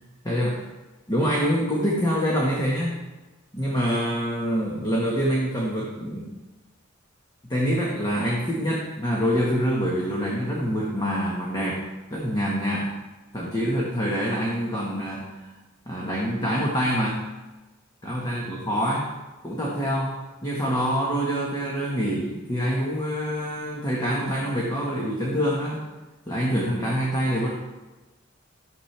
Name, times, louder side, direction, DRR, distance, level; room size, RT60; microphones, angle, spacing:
voice 1, 0.2-0.6 1.1-3.0 3.5-6.3 7.5-11.8 12.1-12.9 13.3-15.5 15.9-17.2 18.0-19.1 19.4-25.8 26.3-27.5, equal, 20° left, -4 dB, 1.5 m, -25 dB
12.0 x 7.5 x 3.4 m, 1.1 s
head